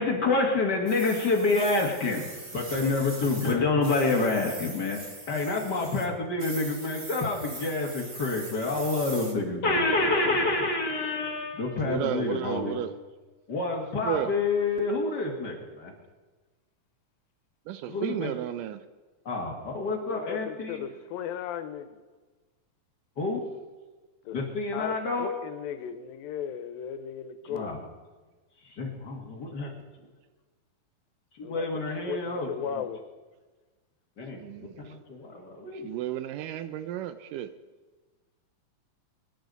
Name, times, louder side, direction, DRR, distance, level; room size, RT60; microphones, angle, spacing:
voice 1, 0.0-2.3 2.5-5.0 5.3-12.8 13.5-15.9 17.9-18.3 19.2-20.8 23.2-23.5 24.3-25.3 27.4-27.8 28.8-29.7 31.4-32.8 34.2-35.9, left 3 dB, 40° left, 1.7 m, -28 dB
sound 1, 0.9-3.6 3.8-6.1 6.4-9.3, right 2 dB, 45° right, 0.7 m, -41 dB
voice 2, 11.9-12.9 14.0-14.3 17.7-18.8 34.4-34.7 35.8-37.5, right 11 dB, 80° right, 2.0 m, -32 dB
voice 3, 20.0-21.9 24.3-24.4 24.7-27.8 31.4-31.7 32.1-33.0, left 9 dB, 90° left, 2.6 m, -36 dB
23.0 x 11.0 x 4.0 m
omnidirectional pair, 4.1 m